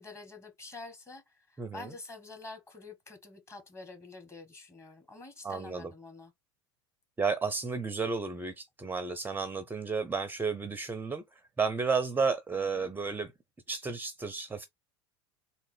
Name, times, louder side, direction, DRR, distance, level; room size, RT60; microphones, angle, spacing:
voice 1, 0.0-6.3 12.5-12.9, left 3 dB, 20° left, 1.5 m, -48 dB
voice 2, 1.6-1.9 5.4-5.9 7.2-13.3 13.7-14.6, right 5 dB, 15° right, 0.5 m, -32 dB
3.6 x 2.9 x 3.3 m
hypercardioid pair, 75°, 14 cm